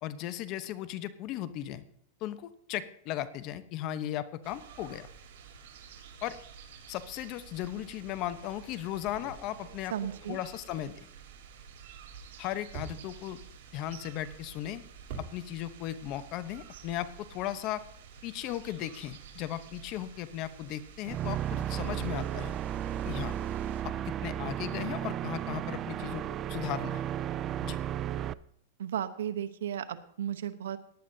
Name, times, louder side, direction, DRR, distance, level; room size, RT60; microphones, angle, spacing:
voice 1, 0.0-1.8 2.2-5.1 6.2-6.4 6.9-9.9 10.3-11.0 12.4-13.4 13.7-14.8 15.2-17.8 18.2-22.5 23.0-23.4 23.8-26.2 26.5-27.0 27.6-27.8, left 12 dB, 45° left, 13 dB, 0.9 m, -36 dB
sound 1, 4.4-23.8, right 7 dB, 65° right, 3.2 m, -51 dB
sound 2, 8.8-11.5 11.8-15.9 16.1-17.4, right 4 dB, 45° right, 3.6 m, -48 dB
voice 2, 9.9-10.4 28.8-30.8, right 10 dB, 85° right, 9 dB, 1.0 m, -34 dB
sound 3, 21.0-28.3, right 11 dB, 30° right, 0.3 m, -34 dB
18.0 x 10.5 x 2.8 m, 0.68 s
hypercardioid pair, 130°, 0 cm